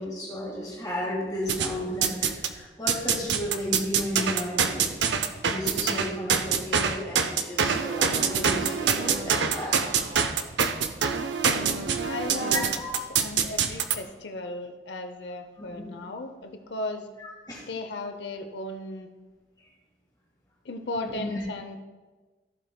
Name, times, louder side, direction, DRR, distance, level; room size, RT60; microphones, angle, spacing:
voice 1, 0.0-4.9 5.4-9.8 12.5-12.9 15.6-16.0 17.2-17.6 21.0-21.4, left 1 dB, 20° left, -4 dB, 1.7 m, -33 dB
sound 1, 1.5-2.5 2.9-14.0, right 6 dB, 80° right, 0.6 m, -25 dB
voice 2, 11.4-17.1 17.7-19.1 20.6-21.8, left 2 dB, 75° left, 7 dB, 0.7 m, -36 dB
14.5 x 7.7 x 2.2 m, 1.3 s
head